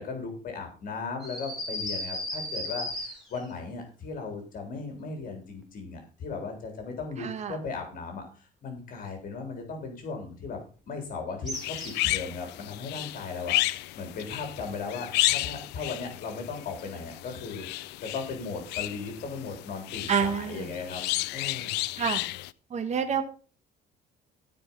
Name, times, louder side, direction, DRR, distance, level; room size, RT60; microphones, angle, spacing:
voice 1, 0.0-10.6 10.9-21.0 21.3-21.8, left 4 dB, 55° left, 3 dB, 3.7 m, -37 dB
sound 1, 1.2-3.5 11.5-12.2, left 1 dB, ahead, 4.7 m, -35 dB
voice 2, 7.2-7.6 20.1-20.7 22.0-22.2 22.7-23.2, right 7 dB, 40° right, 5 dB, 1.7 m, -28 dB
sound 2, 11.5-22.5, left 18 dB, 90° left, 0.5 m, -32 dB
15.5 x 5.3 x 5.5 m, 0.38 s
cardioid pair, 110°, 17 cm